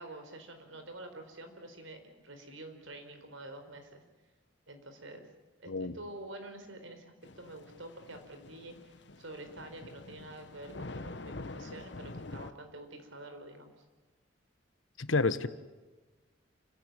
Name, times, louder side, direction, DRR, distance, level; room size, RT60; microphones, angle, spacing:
voice 1, 0.0-4.0 4.7-5.3 5.6-13.8, right 1 dB, 80° right, 6 dB, 4.5 m, -48 dB
Thunder / Rain, 7.2-12.5, left 2 dB, 60° left, 1.1 m, -46 dB
voice 2, 15.0-15.5, left 3 dB, 85° left, 13 dB, 1.3 m, -29 dB
28.5 x 17.0 x 9.0 m, 1.2 s
head